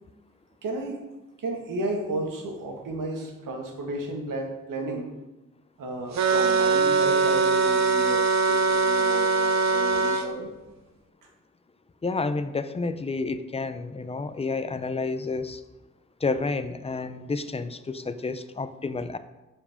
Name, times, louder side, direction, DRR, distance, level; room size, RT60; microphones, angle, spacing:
voice 1, 0.6-1.0 1.4-5.1 5.8-10.5, right 2 dB, 80° right, 2 dB, 1.9 m, -33 dB
sound 1, 6.2-10.3, right 4 dB, 55° right, 0.8 m, -22 dB
voice 2, 12.0-15.6 16.2-19.2, left 3 dB, 20° left, 11 dB, 0.5 m, -30 dB
12.5 x 7.1 x 3.6 m, 1.1 s
wide cardioid pair, 145°, 32 cm